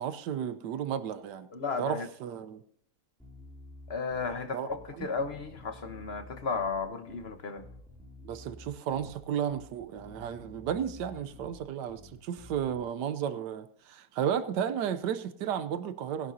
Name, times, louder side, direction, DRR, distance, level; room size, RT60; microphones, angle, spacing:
voice 1, 0.0-1.5 1.8-2.6 4.5-4.7 5.0-5.1 8.2-16.3, right 9 dB, 85° right, 1.3 m, -33 dB
voice 2, 1.5-2.1 3.9-7.6, left 4 dB, 45° left, 1.2 m, -34 dB
Bass guitar, 3.2-12.8, left 1 dB, ahead, 2.2 m, -51 dB
18.5 x 11.0 x 2.7 m
omnidirectional pair, 1.8 m